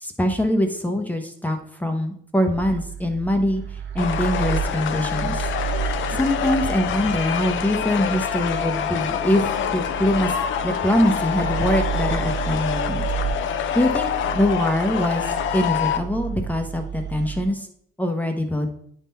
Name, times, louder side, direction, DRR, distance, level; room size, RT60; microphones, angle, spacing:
voice 1, 0.0-3.6 3.9-5.4 6.1-10.3 10.6-13.0 13.7-15.2 15.5-17.6 18.0-18.7, left 1 dB, 10° left, 5 dB, 0.9 m, -23 dB
sound 1, 2.5-17.4, right 8 dB, 65° right, 1.0 m, -31 dB
sound 2, 4.0-16.0, left 9 dB, 75° left, 0.6 m, -26 dB
9.7 x 3.8 x 4.1 m, 0.67 s
cardioid pair, 90°, 20 cm